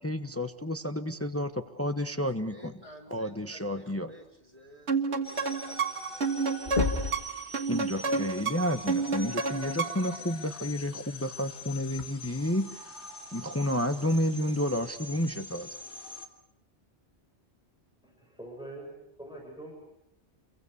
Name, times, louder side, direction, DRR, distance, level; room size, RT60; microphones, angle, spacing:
voice 1, 0.0-2.7 3.1-4.1 7.7-13.0 13.3-15.8, left 1 dB, 15° left, 8 dB, 1.0 m, -31 dB
voice 2, 2.4-6.7, equal, 35° right, 2 dB, 5.4 m, -53 dB
sound 1, 4.9-10.2, right 4 dB, 85° right, 2.0 m, -30 dB
sound 2, 5.2-16.3, left 2 dB, 80° left, 2.9 m, -44 dB
sound 3, 5.7-5.8 6.1-6.4 6.6-7.3 9.0-9.1 11.0-11.1 12.0-12.1, left 4 dB, 45° left, 1.6 m, -30 dB
voice 3, 18.0-18.9 19.2-19.7, right 1 dB, 5° right, 0 dB, 7.4 m, -44 dB
29.0 x 24.0 x 6.9 m, 0.79 s
omnidirectional pair, 1.1 m